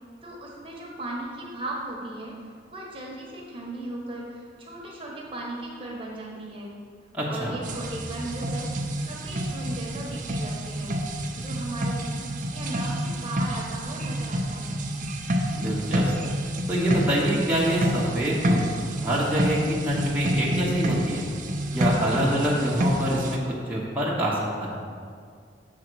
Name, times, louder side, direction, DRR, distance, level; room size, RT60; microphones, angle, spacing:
voice 1, 0.2-6.7 7.3-14.8, right 2 dB, 30° right, -3 dB, 1.1 m, -37 dB
voice 2, 7.1-7.5 15.5-16.1 16.7-18.7 19.0-21.2 21.7-23.4 23.7-24.8, equal, 10° right, -7 dB, 1.0 m, -25 dB
sound 1, 7.6-23.4, equal, 45° right, 0.6 m, -28 dB
7.3 x 3.9 x 6.2 m, 2.2 s
head